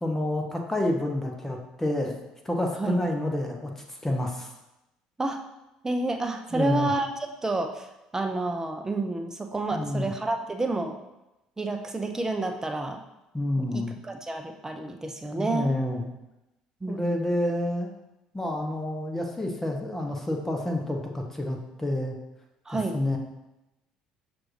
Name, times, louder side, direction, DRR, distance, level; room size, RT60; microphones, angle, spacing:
voice 1, 0.0-2.2 2.4-4.5 6.5-6.9 9.7-10.1 13.3-13.9 15.3-16.1 16.9-17.9 18.3-22.1 22.9-23.2, left 1 dB, 10° left, 2 dB, 0.8 m, -28 dB
voice 2, 5.8-7.1 7.4-7.9 8.1-11.0 11.6-13.0 13.6-15.8 16.8-17.3 22.7-23.0, right 2 dB, 15° right, 4 dB, 0.5 m, -29 dB
6.1 x 2.5 x 3.1 m, 0.95 s
hypercardioid pair, 60°, 3 cm